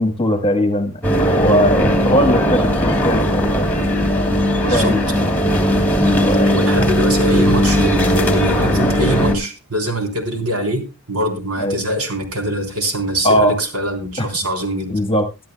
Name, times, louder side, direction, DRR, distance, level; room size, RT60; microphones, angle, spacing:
voice 1, 0.0-4.4 4.7-5.1 6.2-6.7 11.6-11.8 13.2-13.6 14.2-14.3 14.9-15.3, equal, 25° left, 7 dB, 1.4 m, -20 dB
sound 1, 1.0-9.3, equal, 10° left, 2.5 m, -17 dB
voice 2, 4.6-5.1 6.5-15.0, right 1 dB, 80° right, 3 dB, 3.7 m, -23 dB
22.0 x 12.0 x 2.3 m, 0.26 s
head